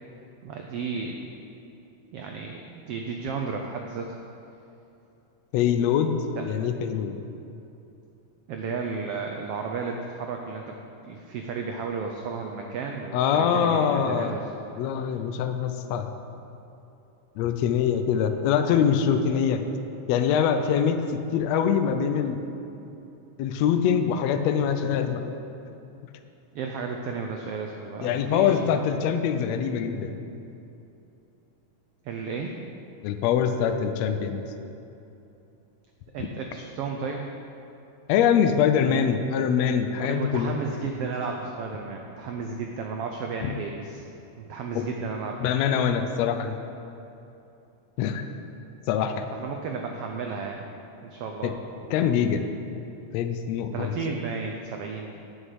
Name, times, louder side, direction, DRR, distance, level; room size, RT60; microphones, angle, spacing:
voice 1, 0.4-1.2 2.1-4.2 6.4-6.5 8.5-10.8 11.0-14.5 26.5-28.8 32.0-32.6 36.1-37.2 40.0-44.0 44.4-45.5 49.4-50.7 51.0-51.6 53.7-55.2, right 5 dB, 90° right, 2 dB, 1.3 m, -33 dB
voice 2, 5.5-6.2 6.5-7.2 13.1-14.4 14.8-16.1 17.4-19.6 20.1-21.0 21.3-22.4 23.4-25.3 28.0-30.2 33.0-34.4 36.2-36.3 38.1-40.5 43.4-43.5 44.7-44.9 45.4-46.6 48.0-48.3 48.9-49.2 51.4-51.5 51.9-52.4 53.1-53.9, left 8 dB, 75° left, 7 dB, 1.6 m, -24 dB
9.2 x 6.5 x 7.9 m, 2.9 s
omnidirectional pair, 3.5 m